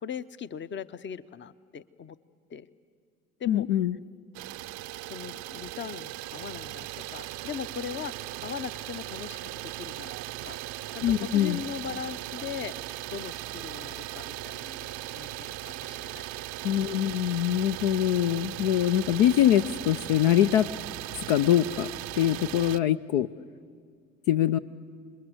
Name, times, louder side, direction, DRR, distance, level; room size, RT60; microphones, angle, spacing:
voice 1, 0.0-2.2 2.5-2.7 3.4-3.6 5.1-10.1 10.4-10.6 10.9-12.7 13.1-16.5, left 8 dB, 35° left, 15 dB, 0.8 m, -39 dB
voice 2, 3.5-4.0 11.0-11.6 16.6-20.7 21.3-21.9 22.2-23.3 24.3-24.6, left 11 dB, 65° left, 11 dB, 0.6 m, -23 dB
Idling, 4.3-22.8, right 17 dB, 50° right, 0.6 m, -38 dB
27.0 x 21.5 x 7.9 m, 2.1 s
figure-of-eight pair, 55°, 35 cm